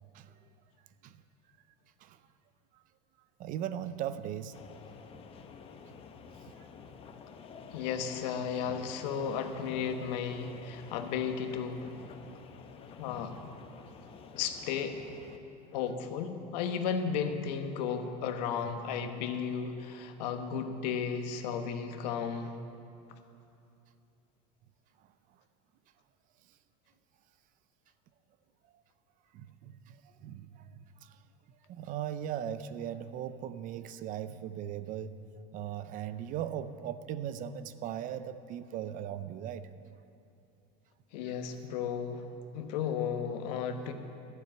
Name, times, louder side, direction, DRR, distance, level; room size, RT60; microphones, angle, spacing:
voice 1, 3.4-4.6 5.9-6.0 6.4-6.7 29.3-30.7 31.0-31.2 31.7-35.2 35.5-39.7, right 10 dB, 40° right, 13 dB, 0.5 m, -38 dB
sound 1, 4.5-15.4, left 6 dB, 25° left, 0.7 m, -50 dB
voice 2, 7.7-12.0 13.0-13.4 14.3-15.0 15.7-22.5 41.1-42.3 42.5-43.9, left 7 dB, 80° left, 7 dB, 1.2 m, -34 dB
12.0 x 7.6 x 8.7 m, 2.7 s
supercardioid pair, 145°, 21 cm